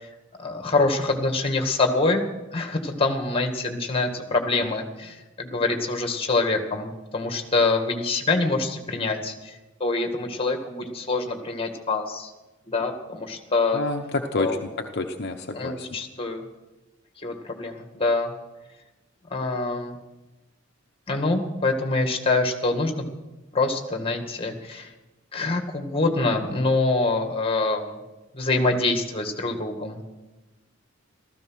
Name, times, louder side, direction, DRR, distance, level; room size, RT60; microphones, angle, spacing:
voice 1, 0.4-2.2 2.5-12.3 12.7-13.8 14.4-14.7 15.5-16.4 17.2-18.3 19.3-20.0 21.1-23.0 23.5-24.9 25.3-28.0 28.3-30.0, left 3 dB, 30° left, 5 dB, 2.1 m, -25 dB
voice 2, 13.7-14.5 14.8-15.8, left 2 dB, 55° left, 3 dB, 1.0 m, -28 dB
15.5 x 14.5 x 6.4 m, 1.1 s
head